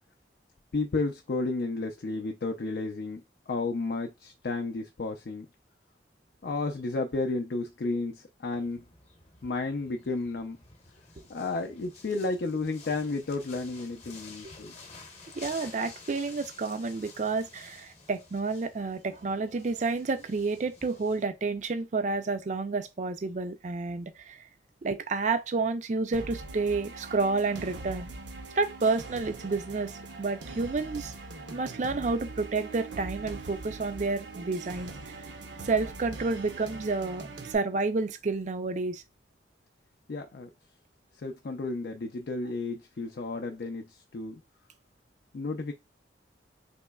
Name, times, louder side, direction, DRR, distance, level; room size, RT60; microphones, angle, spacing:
voice 1, 0.7-3.2 3.5-5.5 6.4-8.8 9.4-10.6 11.3-14.8 40.1-40.5 41.2-44.4 45.3-45.7, left 3 dB, 60° left, 0.4 m, -32 dB
sound 1, 8.5-21.3, left 3 dB, 40° left, 0.9 m, -51 dB
voice 2, 15.4-24.5 24.8-28.1 28.6-29.9 30.2-31.2 31.5-35.2 35.6-39.0, right 3 dB, 40° right, 0.4 m, -30 dB
sound 2, 26.1-37.5, right 3 dB, 85° right, 0.7 m, -42 dB
4.2 x 2.9 x 2.2 m
head